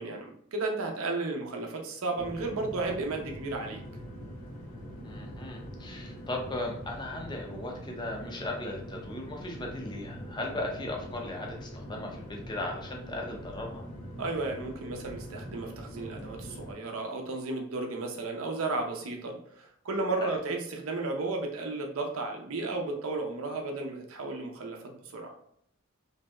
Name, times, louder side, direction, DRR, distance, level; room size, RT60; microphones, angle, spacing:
voice 1, 0.0-3.8 14.2-25.3, right 3 dB, 75° right, 2 dB, 0.6 m, -34 dB
sound 1, 2.2-16.7, equal, 90° left, 0.6 m, -43 dB
voice 2, 5.0-13.8 20.2-20.4, left 2 dB, 20° left, 1 dB, 0.5 m, -37 dB
3.0 x 2.7 x 2.2 m, 0.70 s
head